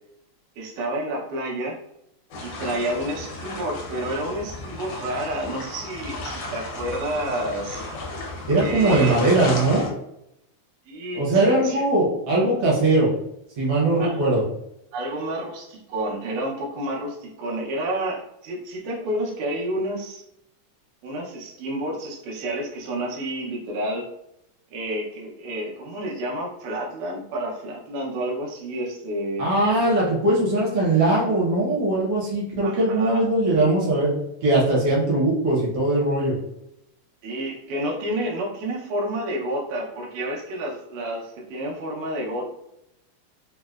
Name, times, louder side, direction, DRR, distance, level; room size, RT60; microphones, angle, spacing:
voice 1, 0.6-1.8 2.4-7.9 8.5-9.2 10.9-11.9 14.0-14.3 14.9-20.2 21.0-24.1 24.7-29.5 32.6-33.3 37.2-42.5, right 1 dB, 85° right, -3 dB, 2.3 m, -30 dB
sound 1, 2.3-9.9, left 2 dB, 70° left, 1.5 m, -34 dB
voice 2, 8.5-9.9 11.1-13.1 13.6-14.4 29.4-34.1 34.4-36.4, right 2 dB, 65° right, -4 dB, 1.4 m, -20 dB
5.2 x 2.0 x 2.3 m, 0.80 s
omnidirectional pair, 3.5 m